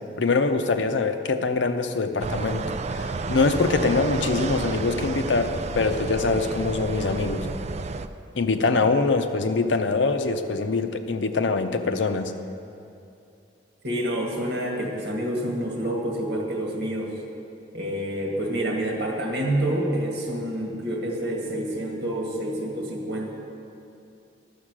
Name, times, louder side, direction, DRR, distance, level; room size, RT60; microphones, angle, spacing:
voice 1, 0.2-7.5 8.4-12.3, left 3 dB, 90° left, 8 dB, 0.7 m, -24 dB
sound 1, 2.2-8.1, right 3 dB, 35° right, 0.3 m, -30 dB
voice 2, 13.8-17.1 17.7-23.3, right 1 dB, 60° right, 0 dB, 1.8 m, -28 dB
12.0 x 7.3 x 6.2 m, 2.7 s
head